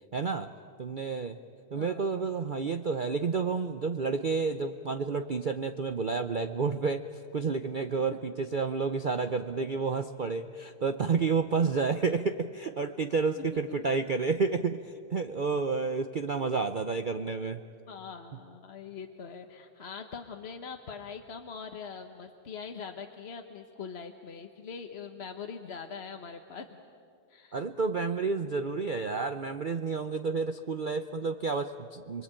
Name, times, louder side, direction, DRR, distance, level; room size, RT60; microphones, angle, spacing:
voice 1, 0.1-0.5 0.8-1.4 1.7-7.0 7.3-17.6 27.5-32.2, right 4 dB, 55° right, 7 dB, 0.5 m, -30 dB
voice 2, 1.7-2.1 8.1-8.2 16.3-16.5 17.9-26.8 27.3-27.6, left 6 dB, 45° left, 5 dB, 1.1 m, -42 dB
29.0 x 21.5 x 9.0 m, 2.4 s
omnidirectional pair, 1.8 m